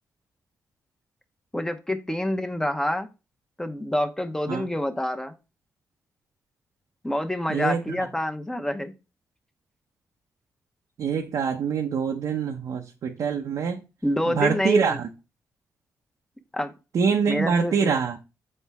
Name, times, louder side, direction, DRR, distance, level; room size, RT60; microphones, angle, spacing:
voice 1, 1.5-3.1 3.6-5.3 7.0-8.9 14.0-15.0 16.5-16.7 17.3-18.0, left 1 dB, 10° left, 0.9 m, -27 dB
voice 2, 7.5-8.1 11.0-13.8 14.3-15.1 16.9-18.2, right 6 dB, 75° right, 0.7 m, -25 dB
6.4 x 4.5 x 3.5 m
cardioid pair, 85°, 6 cm